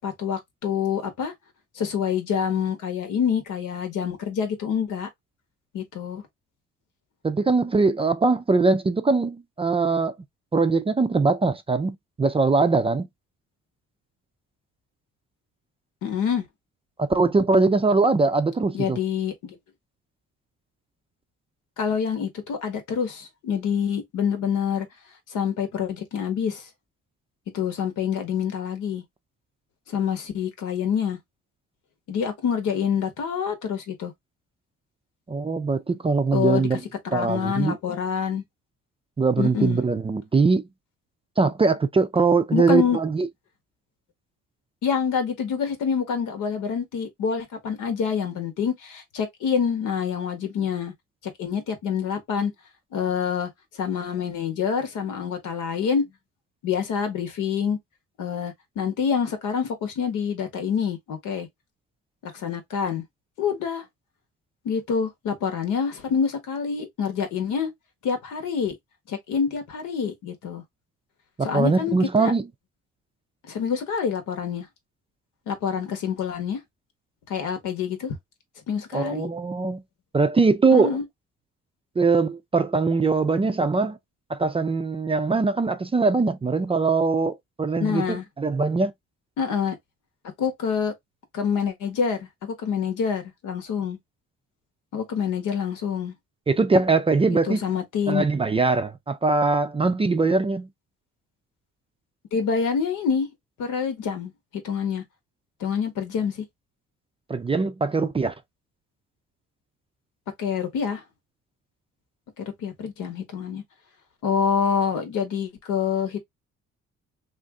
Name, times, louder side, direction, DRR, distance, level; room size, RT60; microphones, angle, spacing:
voice 1, 0.0-1.3 1.7-5.1 5.7-6.2 16.0-16.5 18.7-19.6 21.8-24.9 25.3-26.7 27.5-29.0 29.9-31.2 32.1-34.1 36.3-36.8 37.1-38.4 39.4-39.8 42.5-43.0 44.8-50.9 51.4-52.5 52.9-53.5 53.8-56.1 56.6-57.8 58.2-61.5 62.2-63.0 63.4-63.9 64.6-67.7 68.0-68.8 69.1-70.6 71.4-72.3 73.4-74.7 75.5-76.6 77.3-78.2 78.7-79.3 80.7-81.0 87.8-88.2 89.4-89.8 90.4-90.9 91.3-94.0 94.9-96.1 97.3-98.2 102.3-103.3 103.6-104.3 104.6-105.0 105.6-106.4 110.4-111.0 112.4-113.6 114.2-116.2, left 7 dB, 85° left, 1.1 m, -26 dB
voice 2, 7.2-10.1 10.5-13.1 17.0-19.0 35.3-36.8 37.1-37.8 39.2-40.7 41.4-43.3 71.4-72.5 78.9-79.8 80.1-81.0 82.0-84.0 84.3-88.9 96.5-97.6 98.1-100.7 107.3-108.3, right 4 dB, 20° right, 0.4 m, -22 dB
2.6 x 2.5 x 3.5 m
cardioid pair, 90°, 30 cm